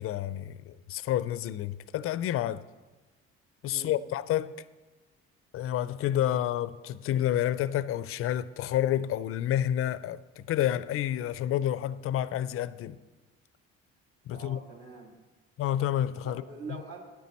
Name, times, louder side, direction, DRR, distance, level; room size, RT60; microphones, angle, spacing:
voice 1, 0.0-2.7 3.6-4.5 5.5-13.0 14.3-14.6 15.6-16.4, left 11 dB, 50° left, 0.4 m, -29 dB
voice 2, 14.3-15.1 16.2-17.0, right 4 dB, 55° right, 1.9 m, -44 dB
9.3 x 9.2 x 4.2 m
supercardioid pair, 75°, 29 cm